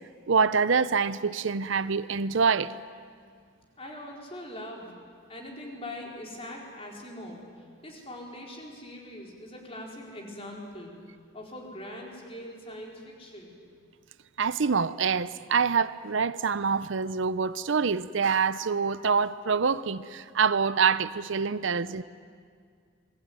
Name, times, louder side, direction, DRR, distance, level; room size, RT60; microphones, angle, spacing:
voice 1, 0.3-2.8 14.4-22.0, right 5 dB, 70° right, 0.6 m, -26 dB
voice 2, 3.8-5.0 5.3-11.0 11.3-13.6, left 1 dB, 30° left, 4.6 m, -42 dB
27.5 x 21.0 x 9.6 m
head